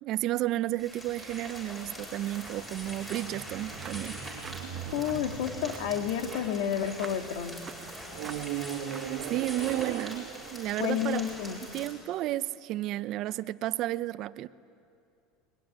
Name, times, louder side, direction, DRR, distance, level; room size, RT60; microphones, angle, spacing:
voice 1, 0.0-4.2 9.3-11.2 11.7-14.5, right 15 dB, 50° right, 0.7 m, -32 dB
sound 1, 0.8-11.9, equal, 15° left, 7.3 m, -43 dB
sound 2, 2.7-7.4 8.1-11.5, right 10 dB, 80° right, 1.7 m, -40 dB
sound 3, 3.5-10.0, right 6 dB, 25° right, 1.1 m, -49 dB
voice 2, 4.9-7.6 10.8-11.6, left 9 dB, 75° left, 2.0 m, -30 dB
22.5 x 22.0 x 10.0 m
supercardioid pair, 130°, 0 cm